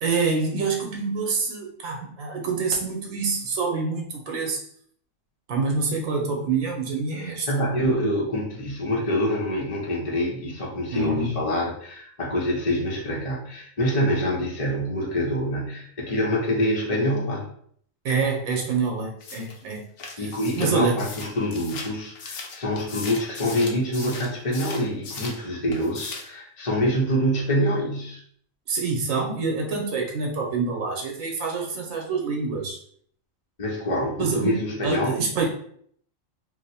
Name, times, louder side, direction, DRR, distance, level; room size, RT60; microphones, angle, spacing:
voice 1, 0.0-4.6 5.5-7.7 10.9-11.4 18.0-19.8 20.2-20.3 20.6-21.0 28.7-32.8 34.2-34.6 34.8-35.5, right 4 dB, 85° right, 0 dB, 1.1 m, -26 dB
voice 2, 7.2-17.5 20.2-28.2 33.6-35.2, equal, 35° left, -3 dB, 0.6 m, -26 dB
sound 1, 19.2-25.4 25.7-26.4, left 4 dB, 85° left, 1.1 m, -38 dB
2.9 x 2.1 x 4.0 m, 0.62 s
omnidirectional pair, 1.4 m